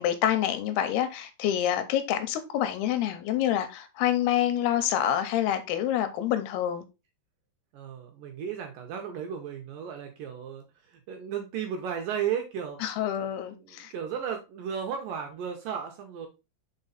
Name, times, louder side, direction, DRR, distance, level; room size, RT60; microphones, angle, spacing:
voice 1, 0.0-6.9 12.8-13.9, left 11 dB, 80° left, 2.6 m, -27 dB
voice 2, 7.7-12.8 13.5-16.3, right 8 dB, 70° right, 2.3 m, -34 dB
5.5 x 4.6 x 4.0 m
omnidirectional pair, 4.8 m